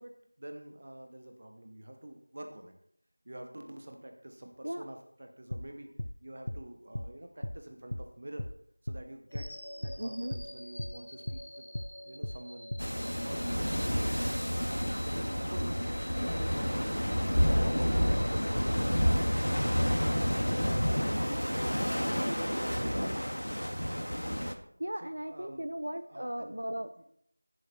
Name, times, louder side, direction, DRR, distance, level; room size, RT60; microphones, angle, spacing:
voice 1, 0.0-2.7 3.2-5.9 6.2-8.5 8.8-9.5 9.8-11.7 12.1-14.4 15.0-21.2 21.7-23.4 25.0-25.7 26.1-26.5 27.0-27.1, right 1 dB, 20° right, 4 dB, 1.0 m, -47 dB
sound 1, 5.5-5.7 6.0-6.1 6.5-6.6 6.9-7.1 7.4-7.6 7.9-8.1 8.4-8.5 8.9-9.0 9.3-9.5 9.8-10.0 10.3-10.5 10.8-10.9 11.3-11.4 11.7-11.9 12.2-12.4 12.7-12.9, left 1 dB, 40° left, 0.5 m, -37 dB
sound 2, 9.3-21.4, equal, 5° left, 2.3 m, -49 dB
voice 2, 10.0-10.3 24.5-26.9, right 1 dB, 45° right, 9 dB, 0.6 m, -37 dB
sound 3, 12.8-24.5, equal, 85° left, 1.8 m, -29 dB
13.5 x 11.0 x 4.3 m, 0.67 s
figure-of-eight pair, 180°, 0 cm